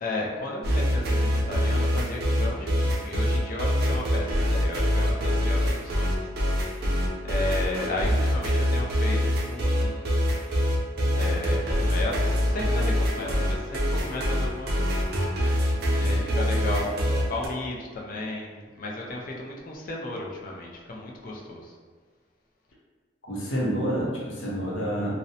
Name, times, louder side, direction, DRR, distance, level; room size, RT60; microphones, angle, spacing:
voice 1, 0.0-10.3 11.1-14.9 15.9-21.7, left 2 dB, 45° left, -2 dB, 0.4 m, -34 dB
sound 1, 0.6-17.5, equal, 55° right, 0.4 m, -25 dB
voice 2, 23.2-25.2, equal, 90° left, -4 dB, 0.6 m, -28 dB
2.6 x 2.0 x 2.7 m, 1.5 s
head